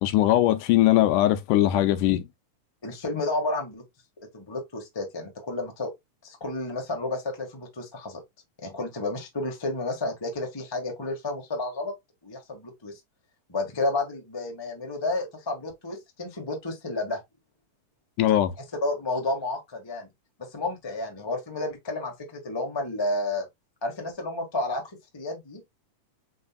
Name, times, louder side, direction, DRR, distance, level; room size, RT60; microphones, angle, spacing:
voice 1, 0.0-2.3 18.2-18.5, left 13 dB, 85° left, 2.2 m, -20 dB
voice 2, 2.8-3.8 4.2-5.9 6.2-8.2 8.6-11.9 12.2-13.0 13.5-17.2 18.8-20.1 20.4-23.5 23.8-24.8 25.1-25.6, left 2 dB, 30° left, 0.5 m, -31 dB
5.2 x 4.0 x 2.3 m
omnidirectional pair, 3.6 m